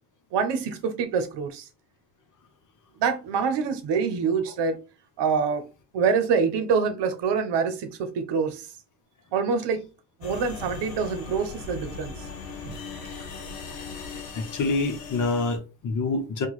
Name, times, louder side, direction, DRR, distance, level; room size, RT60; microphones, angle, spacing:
voice 1, 0.3-1.7 3.0-4.8 5.2-5.6 5.9-8.7 9.3-9.9 10.2-12.1 12.6-12.8, right 5 dB, 60° right, 0.9 m, -25 dB
sound 1, 10.2-15.6, left 5 dB, 90° left, 1.1 m, -39 dB
voice 2, 14.3-16.5, left 3 dB, 40° left, 1.0 m, -27 dB
2.9 x 2.4 x 3.9 m
hypercardioid pair, 70°, 47 cm